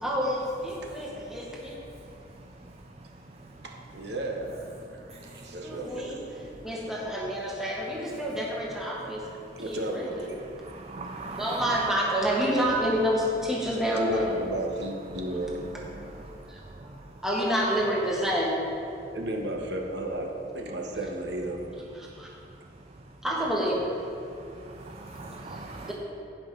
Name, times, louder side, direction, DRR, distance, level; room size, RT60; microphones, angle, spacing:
voice 1, 0.0-1.8 5.6-9.2 9.6-10.2 11.4-14.3 16.5-16.9 17.2-18.5 21.9-22.3 23.2-23.9 25.5-25.9, equal, 5° right, -4 dB, 1.4 m, -28 dB
voice 2, 3.6-4.6 5.0-5.1 5.3-6.4 9.6-10.4 13.9-15.6 19.1-21.7, right 1 dB, 70° right, 1 dB, 1.1 m, -33 dB
voice 3, 10.6-11.6 24.9-25.9, right 3 dB, 35° right, 2 dB, 0.5 m, -39 dB
15.5 x 5.4 x 3.8 m, 2.6 s
head